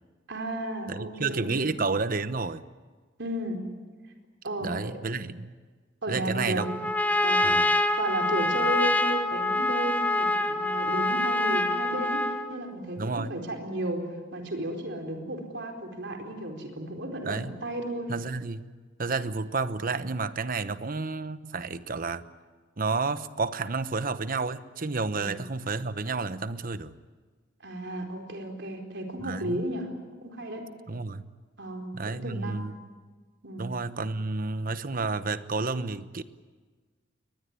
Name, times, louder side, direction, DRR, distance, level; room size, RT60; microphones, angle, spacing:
voice 1, 0.3-1.7 3.2-3.7 4.4-4.9 6.0-6.7 7.2-7.6 8.0-18.1 25.1-25.3 27.6-29.9 30.2-30.6 31.6-32.6 33.4-33.6, right 1 dB, 60° right, 4 dB, 4.3 m, -34 dB
voice 2, 0.9-2.6 4.6-5.5 6.1-6.7 7.4-7.7 13.0-13.4 17.2-17.5 18.1-18.7 19.0-22.2 22.8-26.9 29.2-29.6 30.9-31.2 31.9-32.8 33.6-36.2, right 4 dB, 45° right, 13 dB, 1.0 m, -31 dB
Trumpet, 6.6-12.6, left 2 dB, 10° left, 1.1 m, -25 dB
23.0 x 20.0 x 9.8 m, 1.4 s
head